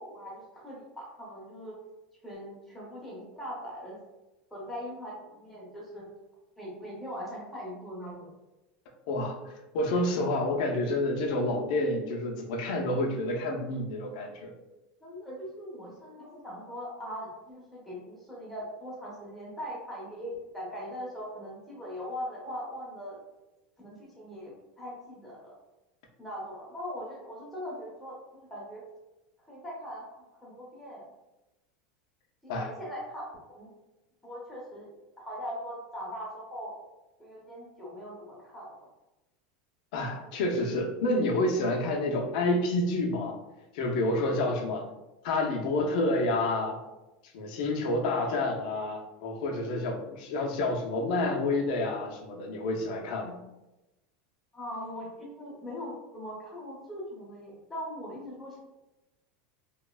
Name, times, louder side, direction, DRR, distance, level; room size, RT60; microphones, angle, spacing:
voice 1, 0.0-1.8 2.2-4.0 4.5-6.1 6.6-8.3 15.0-23.2 23.8-25.5 26.2-28.8 29.5-31.0 32.4-33.7 34.2-36.7 37.2-38.9 54.5-58.6, equal, 5° left, -6 dB, 0.8 m, -40 dB
voice 2, 9.1-14.5 32.5-32.7 39.9-43.4 43.7-44.9 45.2-46.8 47.3-53.4, left 2 dB, 60° left, 1 dB, 0.5 m, -29 dB
2.9 x 2.0 x 2.2 m, 0.98 s
supercardioid pair, 155°, 5 cm